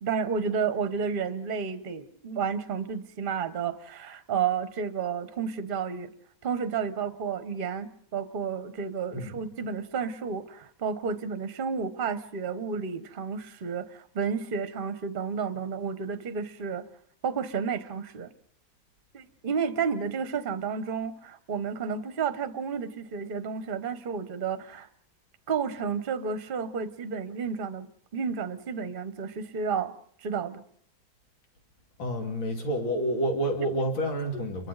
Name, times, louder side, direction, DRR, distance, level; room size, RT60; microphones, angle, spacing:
voice 1, 0.0-6.1 6.4-16.8 17.2-18.3 19.1-24.9 25.5-27.9 28.1-29.9 30.2-30.6, right 6 dB, 35° right, 12 dB, 1.0 m, -31 dB
voice 2, 32.0-34.7, right 1 dB, 85° left, 3 dB, 3.2 m, -29 dB
29.5 x 23.0 x 4.0 m, 0.64 s
omnidirectional pair, 2.1 m